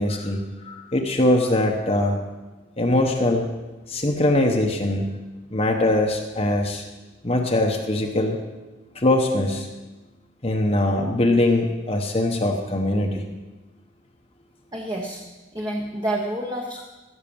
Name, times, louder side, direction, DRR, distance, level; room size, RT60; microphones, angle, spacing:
voice 1, 0.0-2.2 2.8-3.5 3.9-5.1 5.5-6.8 7.2-8.4 8.9-9.7 10.4-13.2, left 1 dB, 30° left, 1 dB, 1.0 m, -22 dB
voice 2, 14.7-15.2 15.5-16.8, right 1 dB, 20° right, -1 dB, 1.1 m, -28 dB
15.5 x 6.6 x 7.1 m, 1.2 s
head